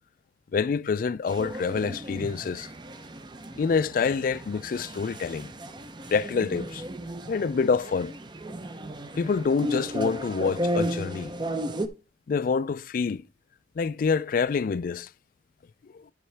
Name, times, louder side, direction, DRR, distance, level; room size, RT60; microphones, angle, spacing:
voice 1, 0.5-2.7 3.6-5.5 6.1-6.8 7.3-8.1 9.2-11.3 12.3-13.2 13.8-15.1, left 5 dB, 50° left, 0.3 m, -26 dB
sound 1, 1.3-11.9, equal, 25° right, 0.6 m, -34 dB
12.5 x 5.6 x 3.3 m
head